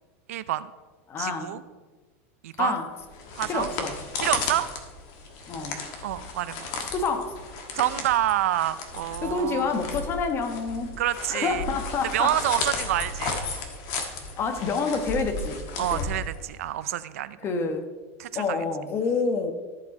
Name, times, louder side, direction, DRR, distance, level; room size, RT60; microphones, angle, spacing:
voice 1, 0.3-0.7 1.2-1.6 2.4-2.8 3.3-3.7 4.2-4.7 6.0-6.7 7.7-9.6 11.0-11.6 12.1-13.4 15.8-17.4 18.2-18.6, right 13 dB, 85° right, 15 dB, 0.4 m, -27 dB
voice 2, 1.1-1.6 2.6-2.9 3.5-3.9 5.5-5.8 6.9-7.4 9.2-10.9 11.3-12.4 14.4-16.1 17.4-17.9 18.3-19.5, left 4 dB, 30° left, 7 dB, 1.1 m, -28 dB
sound 1, 3.0-16.7, left 3 dB, 55° left, 1.4 m, -34 dB
13.5 x 4.6 x 4.2 m, 1.3 s
supercardioid pair, 125°, 8 cm